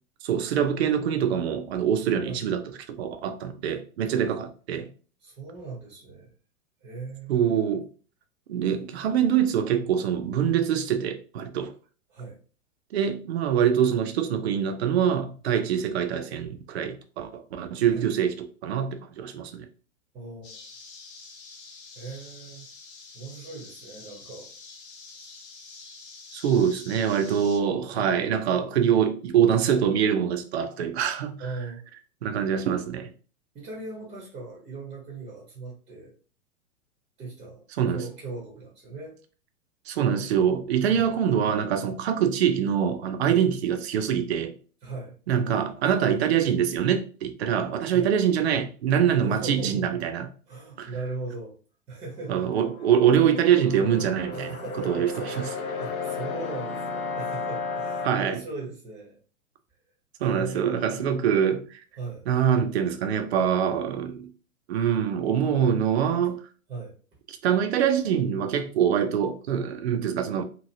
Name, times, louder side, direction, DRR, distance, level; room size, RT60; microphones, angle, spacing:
voice 1, 0.2-2.6 2.9-4.9 7.3-7.8 8.5-11.7 12.9-19.7 26.3-31.4 32.2-33.1 37.8-38.0 39.9-44.5 45.3-50.3 50.8-50.9 52.3-54.6 54.9-55.1 58.0-58.4 60.2-61.8 62.3-64.3 64.7-66.4 67.4-70.4, right 8 dB, 50° right, 0.4 m, -24 dB
voice 2, 5.2-6.3 6.8-7.5 12.1-12.4 17.9-18.1 20.1-20.6 21.9-22.7 23.1-24.5 27.9-28.1 31.4-31.8 33.5-36.1 37.2-39.2 40.9-41.1 43.3-43.4 44.8-45.2 46.1-46.2 47.9-48.1 49.2-50.0 50.5-51.5 51.9-52.7 54.3-59.2 60.2-61.0 62.0-62.3 66.7-66.9, right 3 dB, 15° right, 0.7 m, -38 dB
sound 1, 20.4-27.6, left 4 dB, 40° left, 0.8 m, -46 dB
sound 2, 52.1-58.1, left 4 dB, 70° left, 0.6 m, -34 dB
2.8 x 2.5 x 2.6 m
figure-of-eight pair, 105°, 44 cm